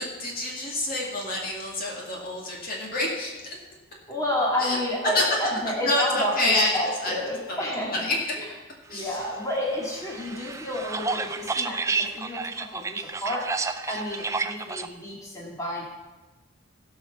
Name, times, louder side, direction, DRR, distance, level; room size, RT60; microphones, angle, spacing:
voice 1, 0.0-3.3 4.6-4.8 5.1-5.2 5.8-6.7 7.0-7.2 7.5-8.2 8.9-9.2, left 2 dB, 45° left, -2 dB, 2.1 m, -27 dB
voice 2, 4.1-8.1 8.4-8.5 8.9-15.8, left 1 dB, 15° left, -4 dB, 2.0 m, -30 dB
sound 1, 9.5-14.9, right 4 dB, 15° right, 0.3 m, -31 dB
16.5 x 5.6 x 5.9 m, 1.2 s
head